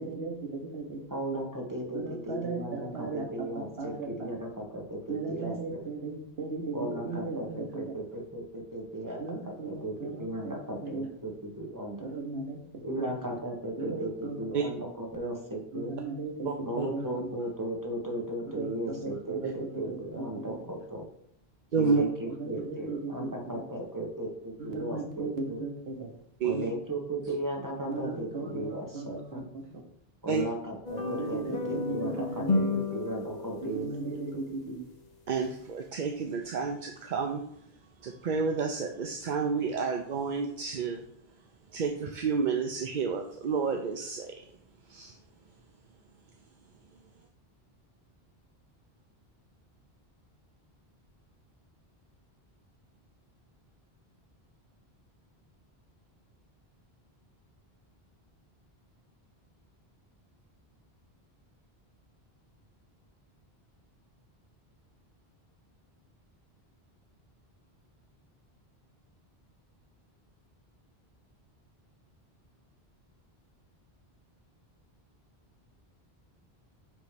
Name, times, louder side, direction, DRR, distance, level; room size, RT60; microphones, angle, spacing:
voice 1, 0.0-1.0 1.9-3.3 3.5-4.3 5.1-7.8 9.2-11.1 12.0-12.6 13.0-13.1 13.8-14.4 15.7-17.3 18.5-18.7 19.0-20.7 22.4-23.6 24.6-26.1 27.9-29.2 29.5-29.8 31.0-32.8 33.7-34.9, right 3 dB, 75° right, 2 dB, 1.3 m, -37 dB
voice 2, 1.1-5.9 6.7-12.1 12.8-15.9 16.6-21.1 21.8-25.6 26.4-29.5 30.2-34.1, right 1 dB, 20° right, -1 dB, 1.3 m, -36 dB
voice 3, 16.4-16.9 19.4-19.5 21.7-22.0 26.4-26.7 30.3-30.4 35.3-37.4 38.0-41.0 41.7-44.3 44.9-45.1, right 5 dB, 55° right, 3 dB, 0.7 m, -30 dB
sound 1, 30.9-34.2, left 3 dB, 45° left, 0.9 m, -32 dB
7.4 x 3.1 x 5.0 m, 0.70 s
omnidirectional pair, 1.1 m